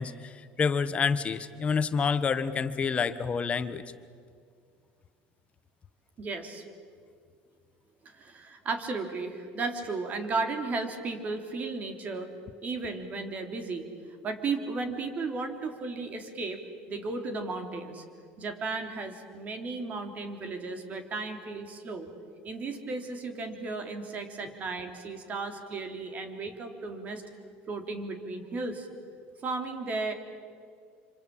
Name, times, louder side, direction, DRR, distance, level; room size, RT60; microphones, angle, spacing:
voice 1, 0.0-3.8, left 5 dB, 30° left, 12 dB, 1.3 m, -28 dB
voice 2, 6.2-6.6 8.0-12.3 12.6-16.6 16.9-18.0 18.4-22.1 22.4-27.2 27.7-28.9 29.4-30.1, right 3 dB, 35° right, 6 dB, 3.3 m, -34 dB
26.5 x 25.5 x 8.7 m, 2.2 s
cardioid pair, 120°, 4 cm